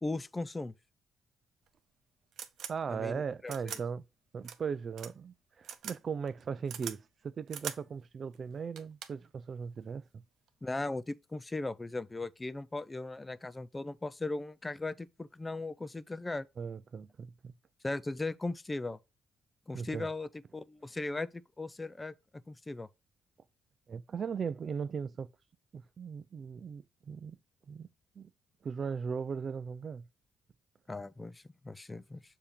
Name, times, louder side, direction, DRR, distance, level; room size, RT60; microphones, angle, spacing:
voice 1, 0.0-0.7 2.9-3.8 10.6-16.5 17.8-19.0 19.7-21.3 21.6-22.1 22.5-22.9 30.9-32.2, left 2 dB, 20° left, 0.5 m, -38 dB
sound 1, 1.7-1.8 2.3-2.7 3.5-3.8 4.4-4.6 5.0-5.1 5.6-6.0 6.3-7.0 7.5-7.8 8.3-8.4 8.8-9.3 10.5-10.8, right 8 dB, 70° right, 0.9 m, -41 dB
voice 2, 2.7-4.0 4.3-10.2 16.6-17.5 19.7-20.1 23.9-25.3 25.7-27.4 27.7-27.9 28.2-28.3 28.6-30.0, right 6 dB, 45° right, 0.4 m, -38 dB
6.9 x 2.8 x 5.1 m
cardioid pair, 90°, 0 cm